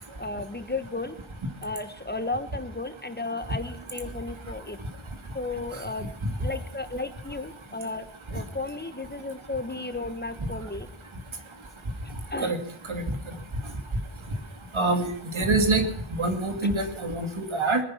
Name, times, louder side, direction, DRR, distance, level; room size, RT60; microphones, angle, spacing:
voice 1, 0.2-1.1 1.6-4.8 5.3-6.1 6.4-10.9 12.3-12.5 16.6-16.7, left 2 dB, 20° left, 11 dB, 1.3 m, -34 dB
voice 2, 14.7-15.1 15.3-15.9 16.2-17.8, right 2 dB, 70° right, 6 dB, 2.6 m, -25 dB
19.5 x 10.5 x 5.9 m, 0.67 s
wide cardioid pair, 65°, 49 cm